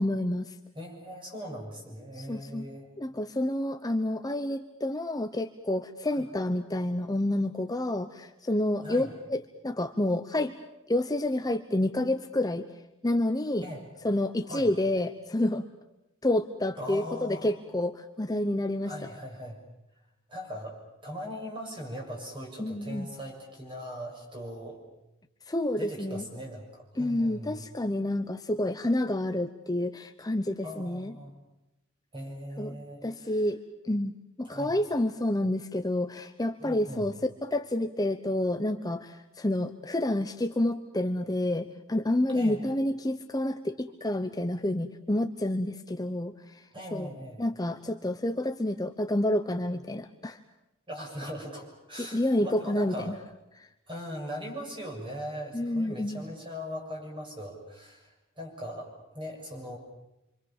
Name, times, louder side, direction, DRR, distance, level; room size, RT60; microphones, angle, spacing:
voice 1, 0.0-0.5 2.2-2.7 3.0-10.6 10.9-12.7 13.0-13.7 14.0-15.7 16.2-18.9 22.6-23.1 25.5-26.2 27.0-31.1 32.6-32.7 33.0-33.6 33.8-34.1 34.4-37.1 37.4-46.6 46.9-47.1 47.4-50.4 52.0-53.2 55.5-56.2, left 1 dB, 20° left, 7 dB, 0.9 m, -29 dB
voice 2, 0.7-2.9 6.1-6.3 8.8-9.1 13.6-13.9 14.5-14.7 16.8-17.5 18.8-19.6 20.3-24.8 25.8-27.6 30.6-31.3 32.1-33.5 34.4-34.7 36.6-37.1 42.3-42.6 46.7-47.4 50.9-53.2 53.9-59.8, equal, 25° right, 1 dB, 7.4 m, -40 dB
27.5 x 26.0 x 7.3 m, 0.93 s
head